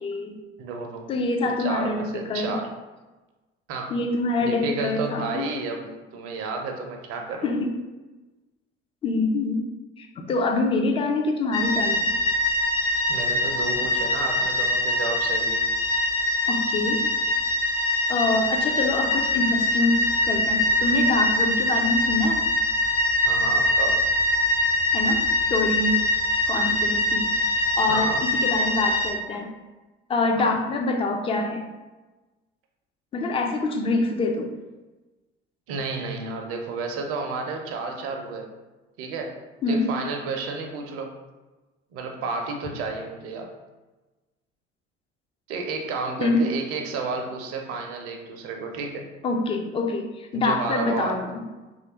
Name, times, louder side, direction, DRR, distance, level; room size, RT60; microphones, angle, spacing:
voice 1, 0.0-0.4 1.1-2.6 3.9-5.5 7.4-7.7 9.0-9.7 10.0-12.1 16.5-17.0 18.1-22.4 24.9-26.0 26.5-29.5 30.1-31.6 33.1-34.5 39.6-39.9 46.2-46.5 49.2-51.4, left 2 dB, 20° left, 4 dB, 0.3 m, -25 dB
voice 2, 0.6-1.1 1.6-2.7 3.7-4.0 4.4-7.5 13.1-15.6 23.3-24.1 27.9-28.2 30.3-30.5 35.7-38.5 39.0-39.4 39.7-41.1 41.9-43.5 45.5-49.1 50.3-51.2, right 4 dB, 45° right, 3 dB, 0.6 m, -31 dB
sound 1, 11.5-29.1, left 1 dB, 70° left, 0.8 m, -23 dB
3.2 x 2.4 x 2.8 m, 1.2 s
figure-of-eight pair, 55°, 33 cm